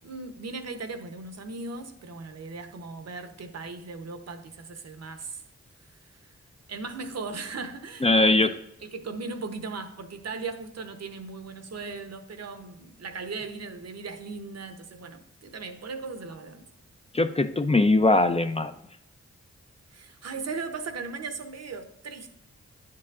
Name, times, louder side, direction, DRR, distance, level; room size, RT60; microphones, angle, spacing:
voice 1, 0.0-5.4 5.9-6.4 6.7-16.6 19.9-22.4, right 4 dB, 60° right, 0.8 m, -38 dB
voice 2, 8.0-8.5 17.1-18.7, left 2 dB, 20° left, 0.4 m, -21 dB
9.4 x 4.7 x 2.4 m
cardioid pair, 45°, 29 cm